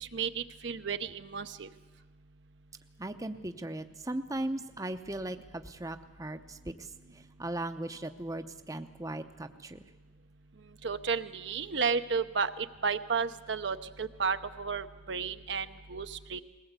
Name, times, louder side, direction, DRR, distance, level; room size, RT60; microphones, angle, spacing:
voice 1, 0.0-1.7 10.8-16.4, right 5 dB, 65° right, 9 dB, 0.8 m, -33 dB
voice 2, 3.0-6.6 7.4-9.8, right 1 dB, 20° right, 8 dB, 0.7 m, -37 dB
21.0 x 18.5 x 8.2 m, 1.2 s
head